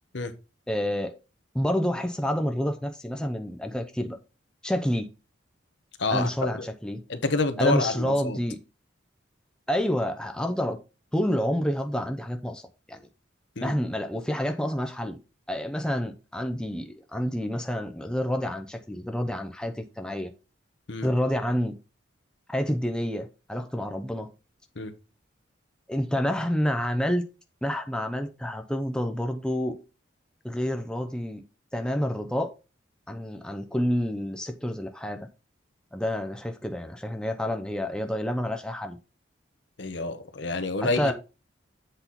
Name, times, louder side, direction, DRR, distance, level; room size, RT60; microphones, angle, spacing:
voice 1, 0.7-1.1 1.5-4.2 4.6-5.1 6.1-7.0 7.6-8.6 9.7-10.8 11.1-12.6 12.9-13.0 13.6-15.2 15.5-20.3 21.0-21.8 22.5-24.3 25.9-27.2 27.6-29.8 30.4-31.4 31.7-32.5 33.1-35.3 35.9-39.0 40.8-41.1, equal, 5° left, 0.7 m, -28 dB
voice 2, 6.0-6.7 7.1-8.4 13.6-13.7 20.9-21.1 24.8-24.9 39.8-41.1, left 3 dB, 65° left, 1.0 m, -28 dB
8.1 x 4.3 x 4.0 m
head